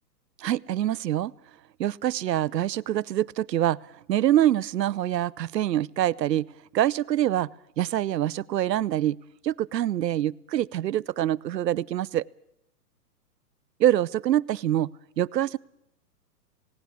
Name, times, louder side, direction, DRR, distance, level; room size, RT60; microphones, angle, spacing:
voice 1, 0.4-1.3 1.8-7.5 7.8-9.2 9.4-12.3 13.8-14.9 15.2-15.6, right 12 dB, 85° right, 22 dB, 0.7 m, -25 dB
18.5 x 17.5 x 8.4 m, 0.80 s
hypercardioid pair, 160°, 48 cm